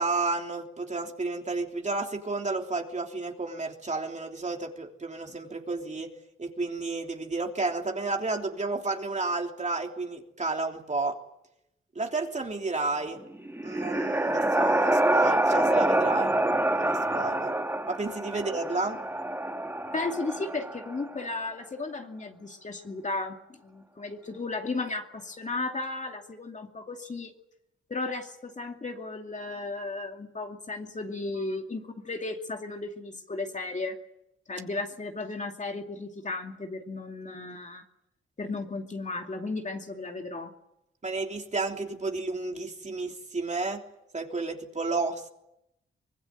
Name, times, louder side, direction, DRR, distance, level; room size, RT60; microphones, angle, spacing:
voice 1, 0.0-6.1 6.4-11.1 11.9-13.2 13.6-16.3 16.7-17.5 17.9-19.0 41.0-43.8 44.1-45.3, right 3 dB, 35° right, 3 dB, 3.3 m, -31 dB
sound 1, 13.3-21.1, right 1 dB, 10° right, 2.2 m, -26 dB
voice 2, 19.9-27.3 27.9-34.0 34.5-37.8 38.4-40.5, left 3 dB, 35° left, 4 dB, 2.5 m, -35 dB
24.5 x 20.5 x 9.3 m, 0.85 s
cardioid pair, 85°, 21 cm